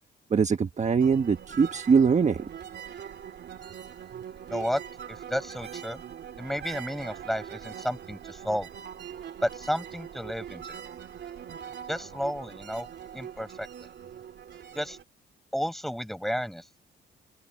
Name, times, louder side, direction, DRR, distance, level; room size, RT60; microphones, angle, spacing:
voice 1, 0.3-2.5, right 6 dB, 35° right, 1.2 m, -22 dB
sound 1, 1.0-15.0, right 9 dB, 60° right, 2.7 m, -42 dB
voice 2, 4.5-4.8 5.1-6.0 6.4-8.7 9.4-10.8 11.9-12.9 13.1-13.9 14.7-15.0 15.5-16.7, equal, ahead, 7.4 m, -32 dB
open air
cardioid pair, 90°, 20 cm